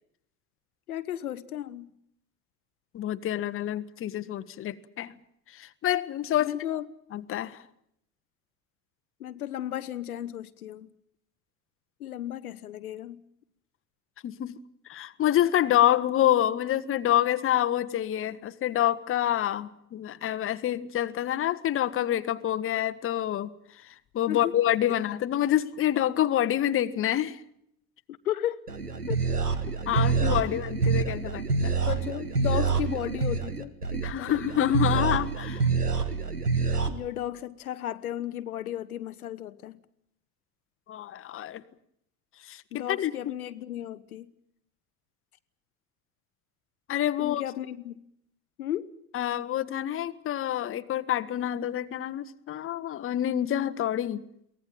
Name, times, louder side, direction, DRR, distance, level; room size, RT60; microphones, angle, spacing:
voice 1, 0.9-1.9 6.4-6.8 9.2-10.9 12.0-13.2 24.3-24.6 28.1-28.7 29.1-29.2 29.7-30.6 31.8-34.3 35.0-35.3 36.9-39.8 42.7-44.3 47.2-48.0 48.6-49.0, left 12 dB, 75° left, 0.8 m, -35 dB
voice 2, 2.9-5.2 5.5-6.5 7.1-7.6 14.2-14.6 14.9-27.4 29.9-31.7 34.0-35.7 40.9-41.6 42.4-42.6 42.9-43.1 46.9-47.4 49.1-54.2, left 12 dB, 30° left, 1.1 m, -27 dB
sound 1, 28.7-36.9, right 5 dB, 90° right, 1.4 m, -27 dB
23.5 x 17.5 x 9.2 m
figure-of-eight pair, 70°, 45 cm